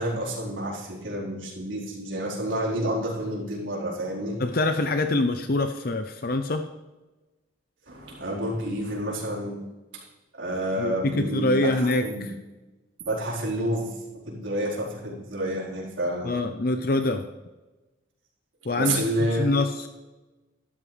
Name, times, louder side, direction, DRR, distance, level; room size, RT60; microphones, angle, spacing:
voice 1, 0.0-4.4 7.9-9.6 9.9-10.0 10.4-11.7 12.0-12.3 13.1-13.9 14.2-16.4 18.8-19.5, right 1 dB, 85° right, -4 dB, 4.3 m, -29 dB
voice 2, 4.4-6.7 10.8-12.3 16.2-17.3 18.6-19.0 19.3-19.9, left 2 dB, 50° left, 8 dB, 0.7 m, -25 dB
13.0 x 12.5 x 3.4 m, 1.1 s
head